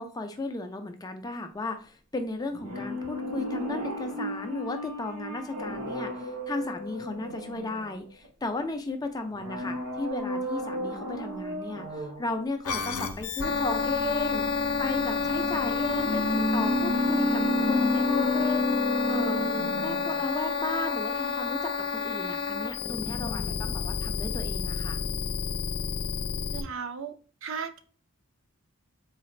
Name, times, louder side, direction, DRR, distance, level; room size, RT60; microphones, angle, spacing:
voice 1, 0.0-19.4 19.8-25.0, left 3 dB, 15° left, 6 dB, 0.3 m, -35 dB
sound 1, 2.5-8.3 9.3-12.3 15.1-20.3 20.6-20.7, left 1 dB, 90° right, 1.1 m, -31 dB
sound 2, 12.6-26.6, left 4 dB, 85° left, 0.6 m, -29 dB
voice 2, 26.5-27.1 27.4-27.8, right 6 dB, 60° right, 8 dB, 0.5 m, -35 dB
3.9 x 2.4 x 3.1 m, 0.41 s
head